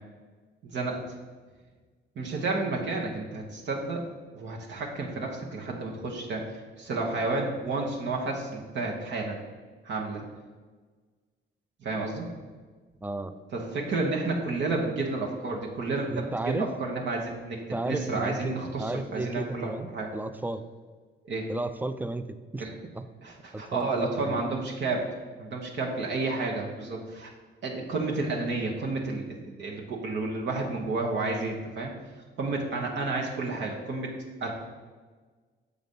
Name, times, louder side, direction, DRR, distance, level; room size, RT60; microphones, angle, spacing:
voice 1, 0.6-1.0 2.2-4.0 4.3-9.4 9.8-10.2 11.8-12.2 13.5-20.1 21.2-21.5 22.6-22.7 23.2-25.1 25.4-27.3 27.6-31.9 32.4-34.1 34.4-34.5, right 3 dB, 65° right, -1 dB, 1.1 m, -31 dB
voice 2, 13.0-13.3 16.1-16.7 17.5-20.7 21.5-22.6 22.9-23.1 23.5-24.4, right 2 dB, 10° right, 11 dB, 0.4 m, -33 dB
6.6 x 4.0 x 5.3 m, 1.4 s
cardioid pair, 90°, 20 cm